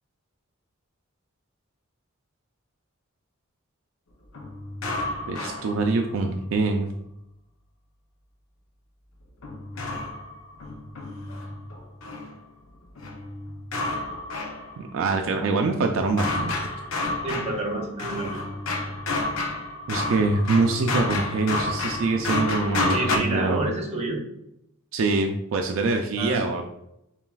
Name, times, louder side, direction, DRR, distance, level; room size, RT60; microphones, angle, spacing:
sound 1, 4.3-6.2 9.4-12.4 13.0-14.9 15.3-23.2, left 2 dB, 75° left, 0.6 m, -30 dB
voice 1, 5.3-6.9 14.8-16.7 19.9-23.6 24.9-26.7, right 3 dB, 70° right, 4 dB, 0.4 m, -24 dB
voice 2, 17.2-18.4 22.9-24.2 26.2-26.6, right 2 dB, 30° right, 0 dB, 1.0 m, -29 dB
7.0 x 2.4 x 2.3 m, 0.82 s
head